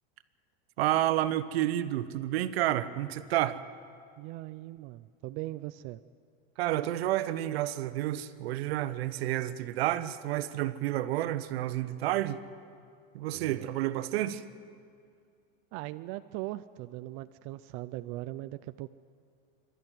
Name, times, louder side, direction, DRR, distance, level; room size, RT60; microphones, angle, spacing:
voice 1, 0.8-3.6 6.6-12.4 13.1-14.4, right 14 dB, 75° right, 1.3 m, -30 dB
voice 2, 4.2-6.0 13.3-13.7 15.7-18.9, right 17 dB, 45° right, 0.5 m, -40 dB
27.0 x 13.0 x 9.3 m
supercardioid pair, 140°, 31 cm